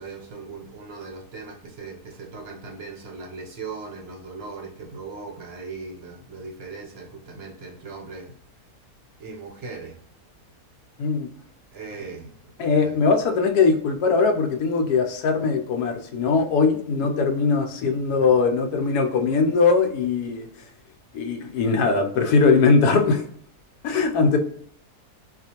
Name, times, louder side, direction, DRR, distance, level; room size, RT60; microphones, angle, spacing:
voice 1, 0.0-8.3 9.2-10.0 11.7-13.0 18.2-18.3, right 4 dB, 55° right, 1 dB, 0.7 m, -39 dB
voice 2, 12.6-20.5 21.1-23.2 23.8-24.4, left 4 dB, 80° left, 5 dB, 1.1 m, -20 dB
4.2 x 2.4 x 2.8 m, 0.63 s
omnidirectional pair, 1.7 m